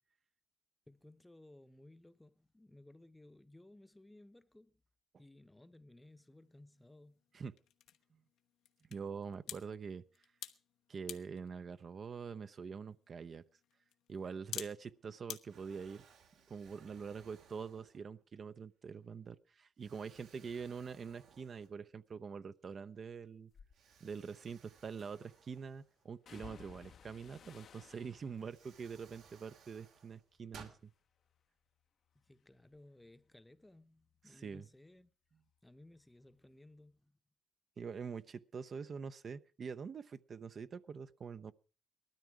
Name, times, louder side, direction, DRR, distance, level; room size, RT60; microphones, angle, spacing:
voice 1, 0.9-4.8 5.2-7.2 32.1-35.1 35.6-37.2, left 1 dB, 10° left, 0.9 m, -59 dB
sound 1, 6.0-15.4, left 11 dB, 85° left, 1.1 m, -52 dB
voice 2, 8.9-10.0 10.9-13.4 14.1-16.0 16.5-23.5 24.0-30.9 34.3-34.6 37.8-41.5, right 6 dB, 45° right, 0.7 m, -45 dB
Explosion, 14.8-15.1 15.5-18.3 18.9-19.1 19.8-22.0 22.4-22.5 23.7-26.4 27.8-27.9 28.3-30.8, right 6 dB, 80° right, 2.6 m, -61 dB
sound 2, 23.5-23.7 25.0-25.4 26.3-30.5 30.8-31.4 31.8-35.1 35.4-36.5 36.8-36.9, left 7 dB, 60° left, 0.8 m, -61 dB
19.0 x 13.0 x 4.7 m
cardioid pair, 90°, 0 cm